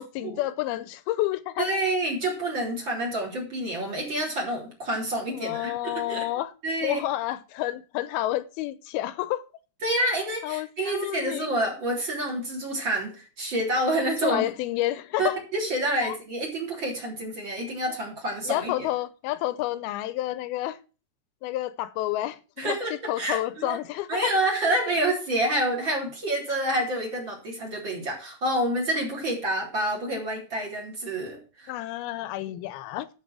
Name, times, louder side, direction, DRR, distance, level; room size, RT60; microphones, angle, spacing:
voice 1, 0.0-1.7 5.3-6.5 6.8-9.4 10.4-11.5 14.2-15.4 16.0-16.1 18.5-20.8 21.4-24.3 24.9-25.0 31.7-33.1, left 15 dB, 85° left, 2.6 m, -30 dB
voice 2, 1.6-6.3 6.6-7.0 9.8-14.4 15.2-18.9 22.6-23.8 24.1-31.7 32.5-32.6, right 1 dB, 30° right, 3.8 m, -28 dB
12.0 x 5.9 x 6.1 m
omnidirectional pair, 4.3 m